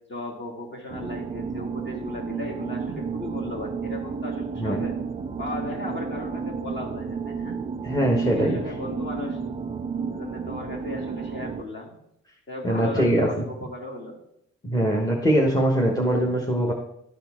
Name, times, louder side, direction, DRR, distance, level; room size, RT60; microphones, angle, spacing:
voice 1, 0.1-4.9 5.4-7.6 8.2-9.4 10.1-11.9 12.5-14.2, left 2 dB, 40° left, -2 dB, 2.5 m, -36 dB
sound 1, 0.9-11.6, right 5 dB, 20° right, 0.4 m, -32 dB
voice 2, 7.8-8.6 12.6-13.3 14.6-16.7, right 1 dB, 10° left, -1 dB, 1.2 m, -22 dB
11.5 x 4.2 x 3.6 m, 0.76 s
cardioid pair, 90°, 30 cm